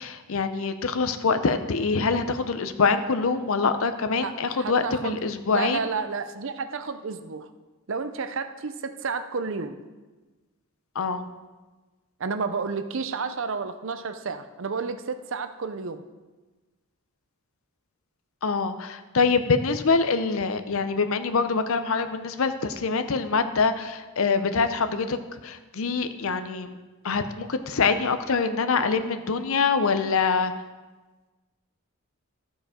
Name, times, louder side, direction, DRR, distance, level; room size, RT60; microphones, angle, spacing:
voice 1, 0.0-5.9 10.9-11.3 18.4-25.2 25.4-26.8 27.0-30.5, left 4 dB, 65° left, 10 dB, 0.6 m, -25 dB
voice 2, 4.2-5.2 5.5-7.5 7.9-9.8 12.2-16.0 18.7-18.8, right 4 dB, 60° right, 10 dB, 0.6 m, -31 dB
14.0 x 4.9 x 5.0 m, 1.3 s
head